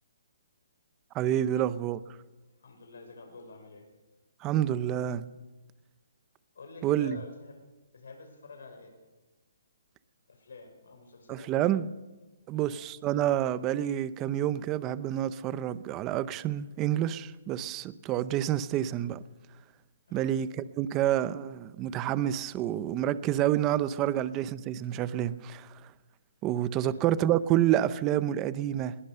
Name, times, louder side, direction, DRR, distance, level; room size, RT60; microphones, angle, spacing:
voice 1, 1.1-2.0 4.4-5.2 6.8-7.2 11.3-11.9 12.5-19.2 20.1-20.5 20.8-25.7 26.4-29.0, right 12 dB, 15° right, 0.6 m, -28 dB
voice 2, 2.6-3.9 6.5-7.6 7.9-9.0 10.3-11.7 12.5-12.8 20.1-20.3 26.8-27.0, left 3 dB, 70° left, 5.7 m, -48 dB
21.5 x 21.0 x 6.7 m
hypercardioid pair, 175°, 0 cm